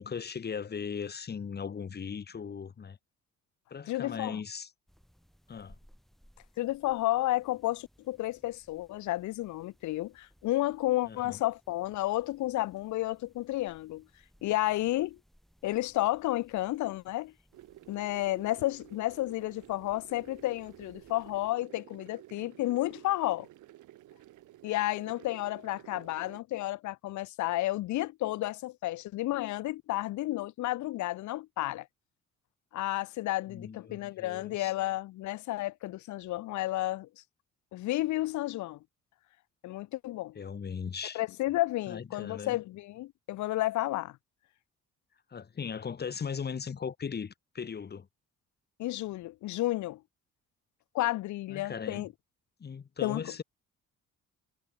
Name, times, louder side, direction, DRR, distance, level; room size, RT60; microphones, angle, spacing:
voice 1, 0.0-3.0 3.7-4.7 5.5-5.7 11.0-11.4 33.5-34.7 40.3-41.2 41.9-42.6 45.3-48.1 51.5-52.1 52.6-53.4, left 6 dB, 35° left, 1.1 m, -38 dB
voice 2, 3.9-4.4 6.6-14.0 14.4-15.2 15.6-17.3 17.9-23.5 24.6-31.9 32.7-37.1 37.7-38.8 39.6-40.4 41.1-44.2 48.8-50.0 50.9-52.1 53.0-53.3, left 16 dB, 75° left, 0.6 m, -32 dB
sound 1, 4.9-21.5, equal, ahead, 7.3 m, -64 dB
sound 2, 17.5-26.4, right 15 dB, 75° right, 1.2 m, -53 dB
cardioid pair, 90°, 30 cm